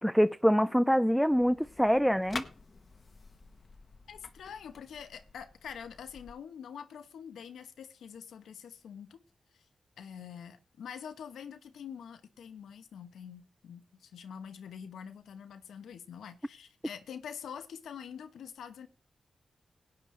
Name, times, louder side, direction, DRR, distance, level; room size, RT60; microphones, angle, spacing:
voice 1, 0.0-2.4, equal, ahead, 0.5 m, -25 dB
sound 1, 1.3-6.3, left 4 dB, 55° left, 1.0 m, -47 dB
voice 2, 4.1-9.2 9.5-9.6 10.0-18.9, left 7 dB, 90° left, 0.9 m, -45 dB
17.0 x 9.2 x 3.2 m
supercardioid pair, 40°, 0 cm